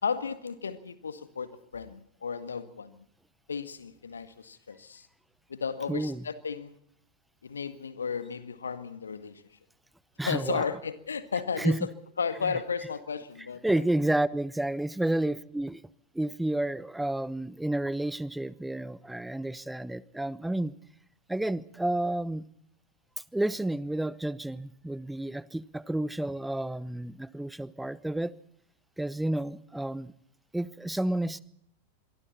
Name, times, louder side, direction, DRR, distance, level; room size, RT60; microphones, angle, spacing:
voice 1, 0.0-3.0 3.5-5.1 5.5-6.8 7.4-9.4 10.3-11.9 12.2-13.6, left 6 dB, 70° left, 11 dB, 1.8 m, -34 dB
voice 2, 5.9-6.2 10.2-10.7 11.6-11.9 12.4-12.5 13.6-15.8 16.1-20.7 21.3-22.5 23.3-28.3 29.0-30.1 30.5-31.4, right 1 dB, 5° right, 20 dB, 0.8 m, -30 dB
26.5 x 23.5 x 4.3 m, 0.70 s
figure-of-eight pair, 90°, 0 cm